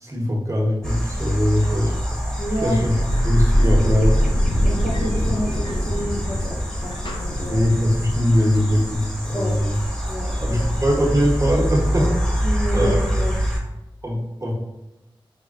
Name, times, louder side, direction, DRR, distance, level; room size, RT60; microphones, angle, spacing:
voice 1, 0.0-1.9 2.6-4.2 5.2-5.3 7.5-9.8 10.4-12.4 12.7-13.0 14.0-14.5, equal, 35° right, -3 dB, 0.8 m, -21 dB
sound 1, 0.8-13.6, equal, 10° left, 0.9 m, -26 dB
voice 2, 2.4-2.8 4.6-7.6 9.3-9.6 10.1-10.7 12.0-12.1 12.4-13.3, equal, 85° left, -3 dB, 0.8 m, -29 dB
sound 2, 2.6-8.1, equal, 60° left, 0.5 m, -22 dB
4.1 x 2.2 x 2.4 m, 0.97 s
wide cardioid pair, 45°, 9 cm